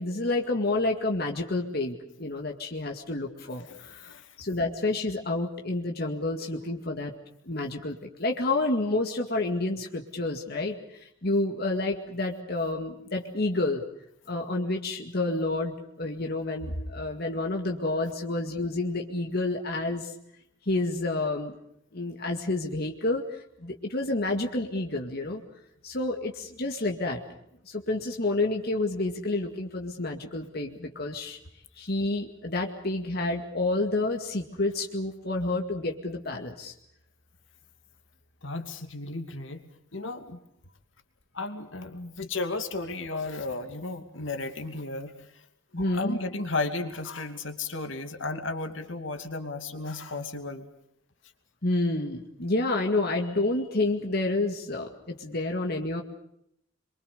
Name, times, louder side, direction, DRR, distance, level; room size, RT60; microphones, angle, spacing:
voice 1, 0.0-4.1 4.4-7.1 7.5-13.8 14.3-20.1 20.7-21.6 21.9-25.4 25.8-27.2 27.7-31.4 31.8-36.7 45.7-46.2 51.6-56.0, left 2 dB, 50° left, 2 dB, 2.1 m, -29 dB
voice 2, 3.6-4.3 38.4-39.6 39.9-40.4 41.3-45.1 45.7-50.7, left 3 dB, 70° left, 6 dB, 2.6 m, -34 dB
27.0 x 23.5 x 6.8 m, 0.74 s
head